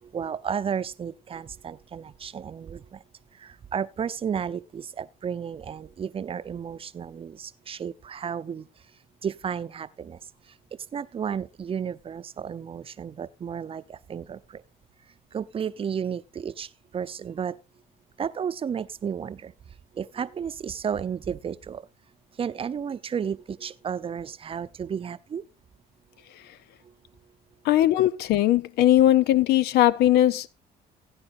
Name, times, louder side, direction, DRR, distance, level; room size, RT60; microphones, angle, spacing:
voice 1, 0.0-3.0 3.3-8.7 9.2-10.2 10.7-14.6 15.3-17.6 18.2-19.5 19.9-21.9 22.4-25.4, right 7 dB, 35° right, 0.7 m, -33 dB
voice 2, 27.6-30.5, left 13 dB, 75° left, 0.6 m, -19 dB
16.5 x 9.8 x 2.6 m
cardioid pair, 110°, 17 cm